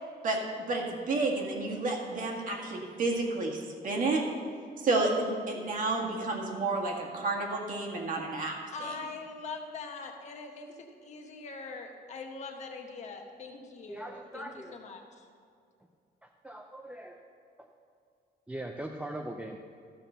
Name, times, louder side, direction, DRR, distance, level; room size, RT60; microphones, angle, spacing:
voice 1, 0.7-4.3 4.8-8.9, right 3 dB, 50° right, 0 dB, 1.8 m, -30 dB
voice 2, 8.7-15.3, left 4 dB, 40° left, 3 dB, 1.1 m, -43 dB
voice 3, 13.9-14.8 16.4-17.2 18.5-19.6, right 1 dB, 5° right, 2 dB, 0.4 m, -40 dB
13.5 x 5.8 x 6.8 m, 2.4 s
cardioid pair, 175°, 17 cm